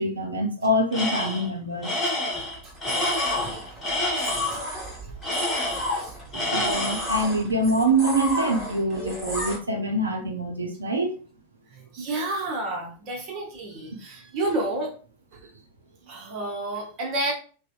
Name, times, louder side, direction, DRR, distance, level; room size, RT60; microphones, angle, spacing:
voice 1, 0.0-1.9 6.5-11.2, right 1 dB, 75° right, 0.4 m, -25 dB
Tools, 0.9-1.5 1.8-4.6 5.2-6.0 6.3-7.2, left 1 dB, 20° left, 0.9 m, -28 dB
sound 1, 2.3-9.6, left 2 dB, 10° right, 1.4 m, -32 dB
voice 2, 3.4-3.8 4.2-4.6 5.0-5.1 5.5-6.9 11.7-14.9 15.3-15.4 16.1-17.3, right 2 dB, 40° right, 0.7 m, -32 dB
2.6 x 2.0 x 2.3 m
figure-of-eight pair, 90°, 0 cm